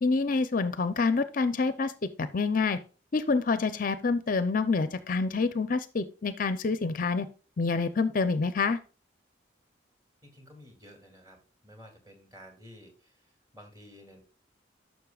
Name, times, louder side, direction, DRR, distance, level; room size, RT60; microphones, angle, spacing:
voice 1, 0.0-1.9 2.2-2.8 3.1-7.3 7.6-8.8, left 4 dB, 45° left, 12 dB, 0.5 m, -27 dB
voice 2, 10.2-11.4 11.6-13.3 13.5-14.2, equal, 20° right, 3 dB, 2.7 m, -52 dB
11.5 x 6.3 x 2.3 m, 0.36 s
head